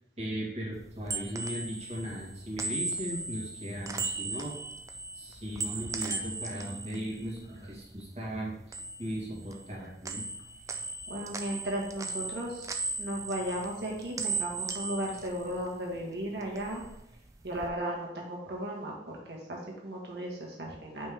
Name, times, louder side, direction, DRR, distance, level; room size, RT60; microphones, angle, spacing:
voice 1, 0.2-4.6 5.2-8.5 9.0-10.3 14.1-14.2, equal, 35° right, -4 dB, 1.9 m, -37 dB
sound 1, 0.8-8.1 8.4-9.8 10.0-16.0 16.4-17.7, right 3 dB, 20° right, 0.4 m, -38 dB
voice 2, 11.1-16.8 17.4-21.1, right 1 dB, 65° right, -2 dB, 1.7 m, -36 dB
5.7 x 5.2 x 3.7 m, 0.80 s
head